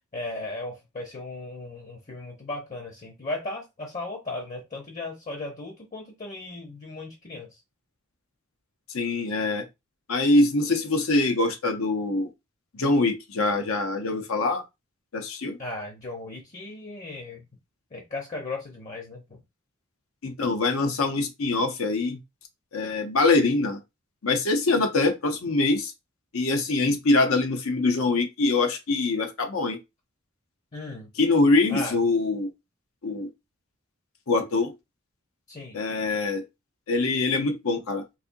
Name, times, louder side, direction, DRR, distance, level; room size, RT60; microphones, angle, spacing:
voice 1, 0.1-7.6 15.6-17.4 17.9-19.4 30.7-31.1 31.7-32.0 35.5-35.8, left 2 dB, 35° left, 0.8 m, -36 dB
voice 2, 8.9-9.6 10.1-12.3 12.7-14.6 15.1-15.6 20.2-22.2 22.7-23.8 24.2-25.9 26.3-29.8 31.2-32.5 33.0-33.3 34.3-34.8 35.7-36.4 36.9-38.0, left 3 dB, 80° left, 0.8 m, -24 dB
4.2 x 2.6 x 2.6 m
head